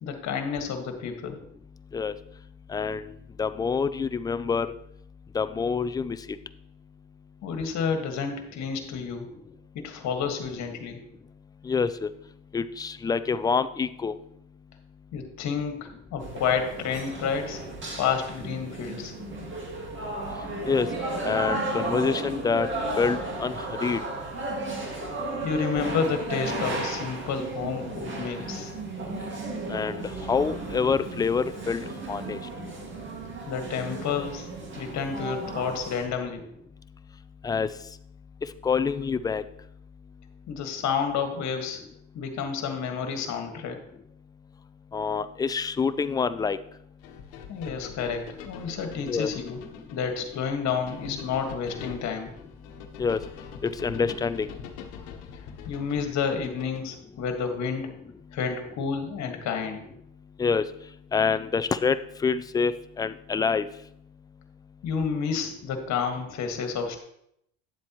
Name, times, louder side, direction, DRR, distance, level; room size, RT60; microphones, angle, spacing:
voice 1, 0.0-1.4 7.4-9.3 9.7-11.0 15.1-17.6 18.0-19.1 24.9-25.1 25.4-28.7 33.5-34.5 34.8-36.4 40.5-41.8 42.1-43.8 47.5-49.6 49.9-52.3 55.7-58.0 58.3-59.8 64.8-67.0, left 6 dB, 50° left, 5 dB, 1.7 m, -30 dB
voice 2, 2.7-3.1 3.4-4.7 5.3-6.2 11.6-12.1 12.5-14.1 20.7-20.9 21.2-22.7 23.0-24.0 29.7-31.8 32.1-32.4 37.4-37.7 38.6-39.4 44.9-46.6 49.1-49.3 53.0-53.2 53.8-54.5 60.4-60.7 61.1-62.7 63.0-63.7, left 5 dB, 10° left, 12 dB, 0.3 m, -26 dB
sound 1, 16.2-36.1, right 2 dB, 35° right, 2.1 m, -34 dB
sound 2, 47.0-57.0, left 6 dB, 80° left, 1.2 m, -43 dB
10.5 x 7.6 x 3.0 m, 0.75 s
supercardioid pair, 95°, 35 cm